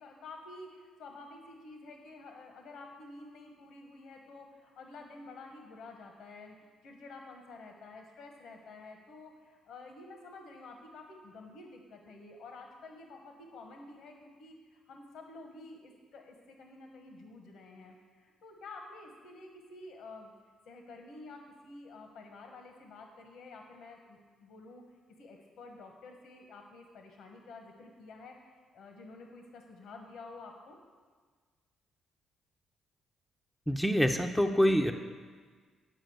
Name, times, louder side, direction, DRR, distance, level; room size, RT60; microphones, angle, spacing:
voice 1, 0.0-6.6 6.8-20.3 20.6-24.8 25.2-30.8, left 3 dB, 75° left, 3 dB, 1.1 m, -50 dB
voice 2, 33.7-34.9, equal, 5° left, 4 dB, 0.5 m, -26 dB
9.0 x 4.9 x 7.8 m, 1.5 s
cardioid pair, 90°, 0 cm